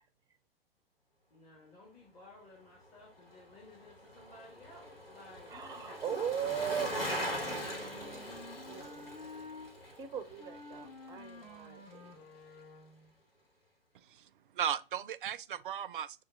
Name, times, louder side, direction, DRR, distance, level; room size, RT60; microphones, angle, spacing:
voice 1, 1.3-6.9 7.4-8.4, left 2 dB, 25° left, 1.5 m, -54 dB
Bicycle, 3.2-11.6 11.9-12.0, equal, 75° left, 1.7 m, -42 dB
voice 2, 5.5-7.7 8.2-8.3 8.7-9.2 9.9-12.1, right 8 dB, 10° right, 0.6 m, -39 dB
Wind instrument woodwind instrument, 6.5-9.7 10.4-13.1, left 3 dB, 45° left, 1.7 m, -51 dB
voice 3, 13.9-16.2, right 9 dB, 60° right, 0.5 m, -37 dB
6.9 x 2.4 x 2.6 m
figure-of-eight pair, 105°, 29 cm